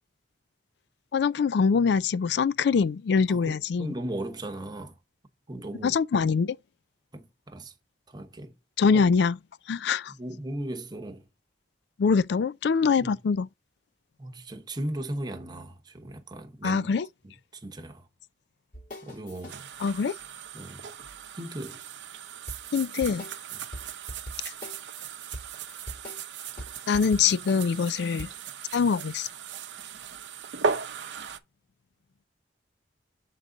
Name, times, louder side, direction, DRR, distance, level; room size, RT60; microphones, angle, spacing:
voice 1, 1.1-3.9 5.8-6.6 8.8-9.4 9.7-10.1 12.0-13.5 16.6-17.1 19.8-20.1 22.7-23.2 26.9-28.3 28.7-29.3, left 5 dB, 65° left, 0.4 m, -24 dB
voice 2, 3.3-5.0 5.5-6.3 7.1-7.7 8.1-8.6 8.9-9.1 10.2-11.3 13.0-13.2 14.2-16.9 17.5-18.1 19.0-19.6 20.5-20.8 21.3-21.8 23.5-23.6, right 1 dB, 25° right, 0.9 m, -37 dB
sound 1, 18.7-19.6 22.5-25.0 25.3-28.2, equal, 45° left, 2.2 m, -41 dB
sound 2, 19.5-31.4, right 6 dB, 80° right, 0.7 m, -37 dB
7.4 x 3.8 x 3.8 m
head